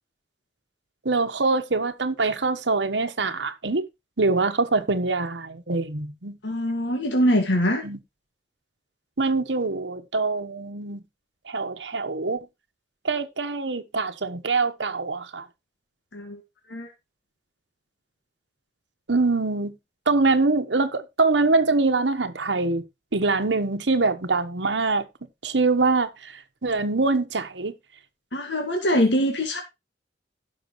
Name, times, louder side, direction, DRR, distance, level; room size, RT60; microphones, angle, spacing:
voice 1, 1.0-3.8 4.2-6.4 7.8-8.0 9.2-11.0 11.5-12.4 13.0-15.4 19.1-19.7 20.1-22.8 23.1-25.1 25.4-27.7, right 3 dB, 80° right, 1.2 m, -24 dB
voice 2, 6.4-7.8 16.1-16.4 16.7-16.9 28.3-29.6, equal, 90° left, 1.9 m, -23 dB
16.0 x 6.1 x 3.1 m
head